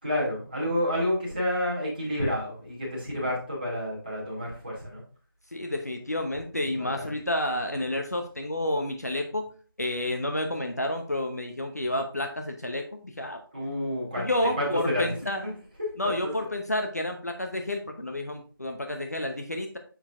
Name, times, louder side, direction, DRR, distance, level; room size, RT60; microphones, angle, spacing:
voice 1, 0.0-5.0 6.8-7.1 13.5-15.1 15.4-15.5 16.0-16.1, left 1 dB, 25° right, -7 dB, 2.3 m, -29 dB
voice 2, 5.5-9.5 9.8-13.4 14.2-15.6 16.0-19.8, left 1 dB, 45° left, 4 dB, 0.8 m, -30 dB
7.0 x 5.9 x 2.5 m, 0.40 s
figure-of-eight pair, 180°, 12 cm